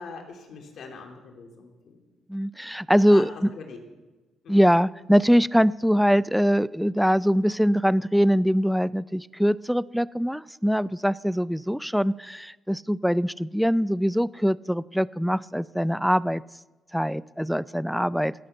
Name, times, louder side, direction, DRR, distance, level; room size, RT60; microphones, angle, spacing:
voice 1, 0.0-2.0 3.1-3.8 4.4-4.7, left 4 dB, 65° left, 2 dB, 3.0 m, -42 dB
voice 2, 2.3-3.5 4.5-16.4 16.9-18.3, equal, ahead, 19 dB, 0.3 m, -23 dB
17.5 x 8.6 x 7.0 m, 1.2 s
cardioid pair, 90°, 0 cm